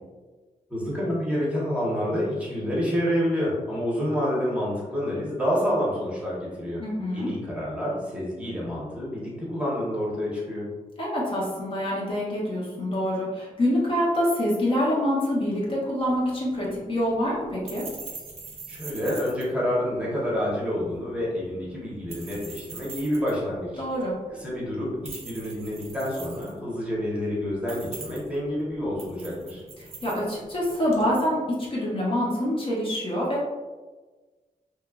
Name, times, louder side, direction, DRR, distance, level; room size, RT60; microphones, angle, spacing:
voice 1, 0.7-6.8 7.1-10.6 18.7-23.8 24.3-29.6, equal, 10° right, -6 dB, 0.8 m, -28 dB
voice 2, 6.8-7.3 11.0-17.8 23.8-24.1 30.0-33.4, equal, 40° left, -5 dB, 0.7 m, -26 dB
sound 1, 16.0-31.1, right 4 dB, 45° right, 0.5 m, -44 dB
2.9 x 2.3 x 2.3 m, 1.3 s
wide cardioid pair, 135°, 14 cm